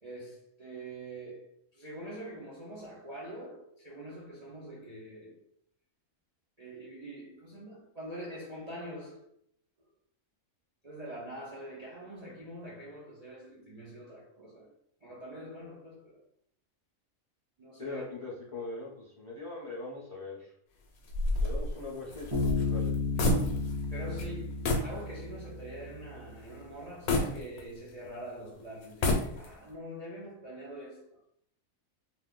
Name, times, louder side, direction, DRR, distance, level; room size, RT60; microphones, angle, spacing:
voice 1, 0.0-5.4 6.6-9.3 10.8-14.7 15.0-16.2 17.6-18.0 23.9-31.0, right 1 dB, 55° right, 0.4 m, -44 dB
voice 2, 17.8-20.5 21.4-22.9, left 3 dB, 50° left, 0.3 m, -41 dB
sound 1, 21.1-23.9 24.2-24.3 24.6-25.0 25.4-25.5 27.1-28.1 28.8-29.7, left 2 dB, 75° left, 1.0 m, -30 dB
Bass guitar, 22.3-25.9, left 3 dB, 25° right, 1.1 m, -33 dB
2.6 x 2.3 x 3.5 m
omnidirectional pair, 1.6 m